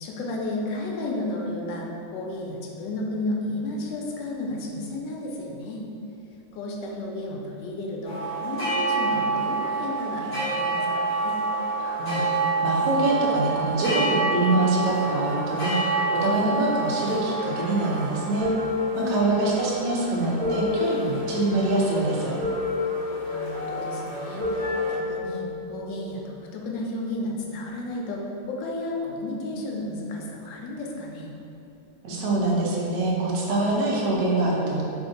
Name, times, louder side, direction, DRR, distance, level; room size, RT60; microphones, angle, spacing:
voice 1, 0.0-5.8 6.5-11.4 19.0-19.3 23.2-31.3, left 2 dB, 80° left, -1 dB, 1.2 m, -33 dB
sound 1, 8.0-24.9, right 3 dB, 30° left, 0.9 m, -29 dB
voice 2, 11.8-12.2 12.6-15.9 16.2-18.5 19.1-22.3 32.0-34.8, right 2 dB, 75° right, -3 dB, 1.2 m, -24 dB
sound 2, 18.4-19.6 20.4-21.6 22.4-23.6 24.4-25.6, left 3 dB, 45° right, 1.3 m, -29 dB
3.4 x 2.6 x 3.7 m, 2.7 s
omnidirectional pair, 2.0 m